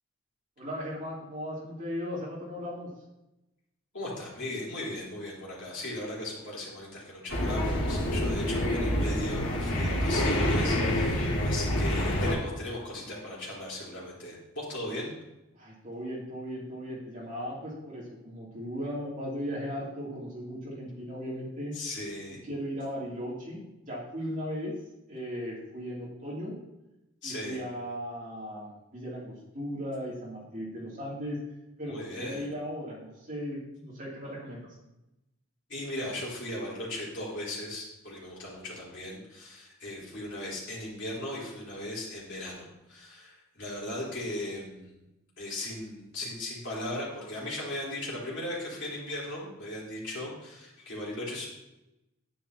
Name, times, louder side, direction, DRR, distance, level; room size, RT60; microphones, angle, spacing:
voice 1, 0.6-2.9 15.5-21.8 22.4-24.8 25.1-26.6 27.2-31.4 31.8-34.6, equal, 35° right, -5 dB, 2.7 m, -37 dB
voice 2, 3.9-15.1 21.7-22.4 27.2-27.6 31.9-32.5 35.7-45.0 45.4-51.5, left 1 dB, 55° left, -6 dB, 3.6 m, -37 dB
sound 1, 7.3-12.3, left 1 dB, 80° left, 2.2 m, -27 dB
10.5 x 9.6 x 2.8 m, 0.92 s
head